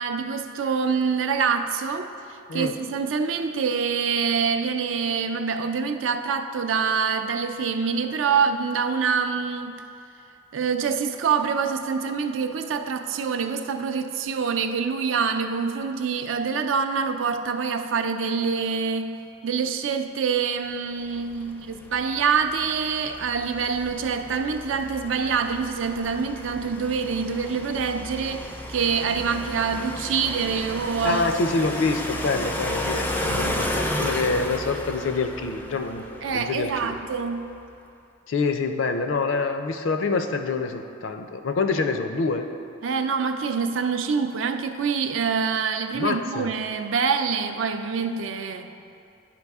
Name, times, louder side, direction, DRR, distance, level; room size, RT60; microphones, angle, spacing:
voice 1, 0.0-9.7 10.5-31.2 33.2-33.6 36.2-37.6 42.8-48.7, right 5 dB, 70° right, 7 dB, 0.4 m, -26 dB
sound 1, 21.1-37.3, left 1 dB, 10° left, 0.4 m, -33 dB
voice 2, 31.0-37.0 38.3-42.5 45.9-46.5, left 3 dB, 70° left, 7 dB, 0.5 m, -26 dB
11.0 x 4.8 x 3.5 m, 2.6 s
head